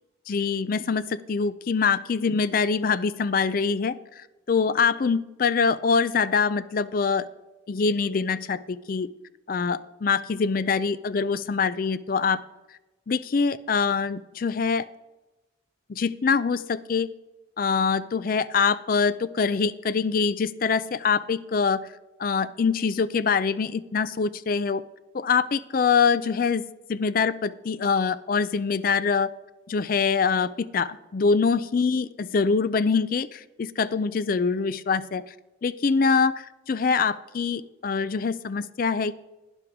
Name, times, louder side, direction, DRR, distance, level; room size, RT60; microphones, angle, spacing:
voice 1, 0.3-7.3 7.7-9.1 9.5-12.4 13.1-14.8 15.9-17.1 17.6-21.9 22.2-24.8 25.1-26.6 26.9-29.3 29.7-32.1 32.3-35.2 35.6-39.2, left 5 dB, 45° left, 15 dB, 0.4 m, -24 dB
11.5 x 10.0 x 3.6 m, 1.1 s
head